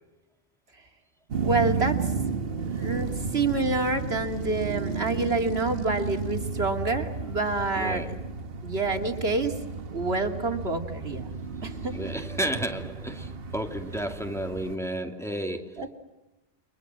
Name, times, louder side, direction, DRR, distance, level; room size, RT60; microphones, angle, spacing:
sound 1, 1.3-14.8, right 5 dB, 65° right, 1.4 m, -33 dB
voice 1, 1.4-2.0 2.6-8.0 8.6-9.5 9.9-11.3 11.6-12.0 15.8-16.0, right 3 dB, 85° right, 2.9 m, -28 dB
voice 2, 7.7-8.2 11.9-15.8, right 1 dB, 5° left, 2.5 m, -32 dB
29.5 x 25.0 x 7.4 m
omnidirectional pair, 1.0 m